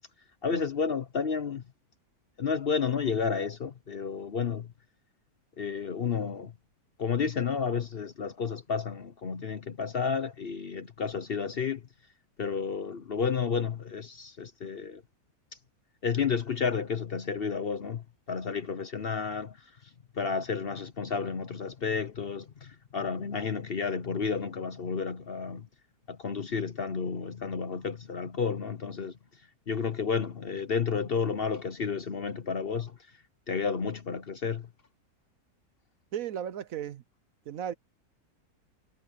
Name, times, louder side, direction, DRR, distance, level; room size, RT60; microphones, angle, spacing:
voice 1, 0.4-1.6 2.4-4.7 5.6-6.5 7.0-11.8 12.4-15.0 16.0-19.6 20.2-25.6 26.1-29.1 29.7-32.9 33.5-34.7, left 5 dB, 45° left, 0.9 m, -31 dB
voice 2, 36.1-37.0 37.5-37.7, right 9 dB, 65° right, 1.1 m, -35 dB
omnidirectional pair, 1.6 m